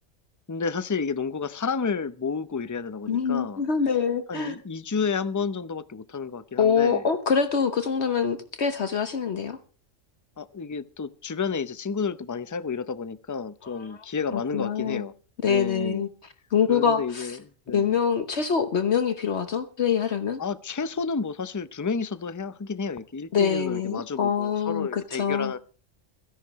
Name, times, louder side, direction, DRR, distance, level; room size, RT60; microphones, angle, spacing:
voice 1, 0.5-3.6 4.3-7.1 10.4-15.1 15.5-16.0 16.7-18.0 20.4-25.6, left 5 dB, 25° left, 0.4 m, -31 dB
voice 2, 3.1-4.5 6.6-9.6 13.8-13.9 14.3-15.0 15.4-16.1 16.5-17.3 17.7-20.4 23.3-25.5, left 6 dB, 60° left, 1.3 m, -25 dB
27.0 x 11.0 x 3.1 m
omnidirectional pair, 1.3 m